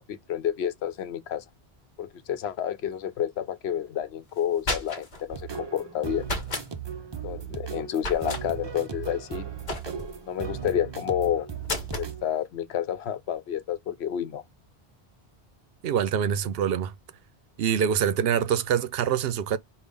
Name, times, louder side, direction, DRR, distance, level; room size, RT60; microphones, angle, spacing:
voice 1, 0.0-1.4 2.0-6.3 7.2-9.5 10.3-11.5 11.9-14.4, left 10 dB, 90° left, 0.9 m, -30 dB
sound 1, 4.4-5.2 6.2-6.7 8.0-8.4 9.7-10.2 11.6-12.1, left 2 dB, 45° left, 1.0 m, -32 dB
sound 2, 5.3-12.3, right 7 dB, 35° right, 0.5 m, -37 dB
voice 2, 15.8-16.9 17.6-19.6, right 8 dB, 70° right, 0.8 m, -25 dB
5.3 x 2.4 x 3.3 m
omnidirectional pair, 1.1 m